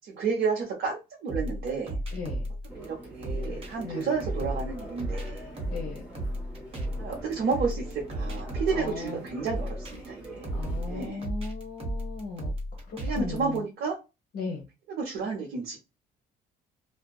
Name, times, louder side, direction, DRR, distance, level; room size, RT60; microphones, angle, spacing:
voice 1, 0.0-2.0 2.8-5.5 7.0-10.5 10.8-11.2 13.0-14.0 15.0-15.8, right 5 dB, 70° right, -1 dB, 0.8 m, -31 dB
sound 1, 1.3-13.6, right 1 dB, 35° right, 1.1 m, -34 dB
voice 2, 2.1-2.4 3.8-4.1 5.6-6.1 8.7-9.2 10.5-12.5 12.9-13.6 14.3-14.7, left 4 dB, 55° left, 1 dB, 0.8 m, -37 dB
sound 2, 2.7-11.1, right 1 dB, 5° right, 1.1 m, -44 dB
2.6 x 2.2 x 2.2 m, 0.26 s
cardioid pair, 110°, 17 cm